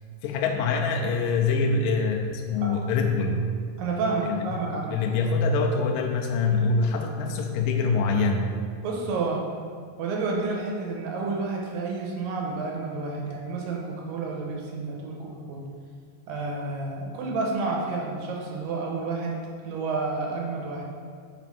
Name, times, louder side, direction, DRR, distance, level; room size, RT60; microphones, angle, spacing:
voice 1, 0.2-3.4 4.9-8.5, left 4 dB, 75° left, 2 dB, 2.2 m, -24 dB
voice 2, 3.8-5.0 8.8-9.5 10.0-15.7 16.3-20.8, right 3 dB, 80° right, -2 dB, 2.5 m, -30 dB
6.3 x 4.3 x 4.2 m, 2.2 s
omnidirectional pair, 4.2 m